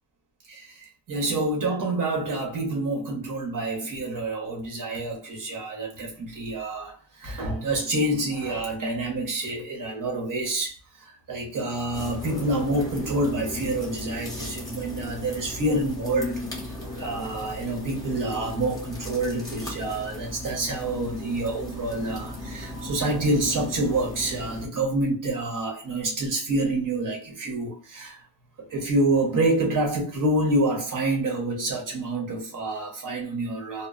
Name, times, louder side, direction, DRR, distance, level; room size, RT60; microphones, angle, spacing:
voice 1, 0.5-28.2 28.7-33.9, right 2 dB, 40° right, 0.9 m, -27 dB
sound 1, 11.9-24.7, left 1 dB, 10° left, 0.8 m, -36 dB
2.0 x 2.0 x 3.6 m
cardioid pair, 140°, 47 cm